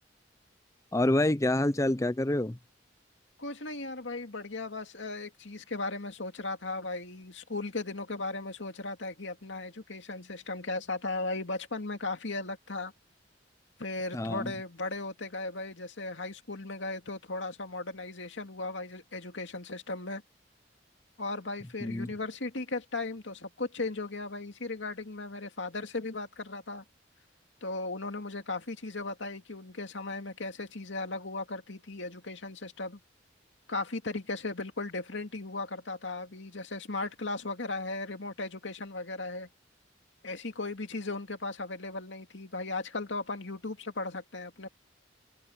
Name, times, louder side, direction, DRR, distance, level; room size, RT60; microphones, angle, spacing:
voice 1, 0.9-2.6 14.1-14.5 21.8-22.1, left 1 dB, 15° left, 0.6 m, -27 dB
voice 2, 3.4-12.9 13.8-20.2 21.2-26.8 27.6-33.0 33.7-39.5 40.2-44.7, left 3 dB, 75° left, 2.4 m, -36 dB
head